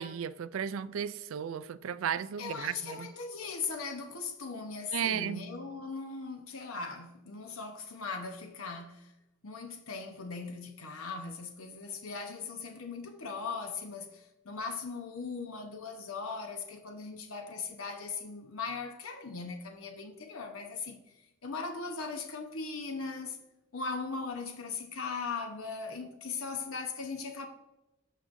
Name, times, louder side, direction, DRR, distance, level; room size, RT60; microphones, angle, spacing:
voice 1, 0.0-3.1 4.9-5.4, right 8 dB, 70° right, 0.4 m, -34 dB
voice 2, 2.4-9.1 9.4-21.0 21.4-23.4 23.7-27.5, left 4 dB, 85° left, 0.9 m, -39 dB
13.0 x 5.0 x 2.6 m
head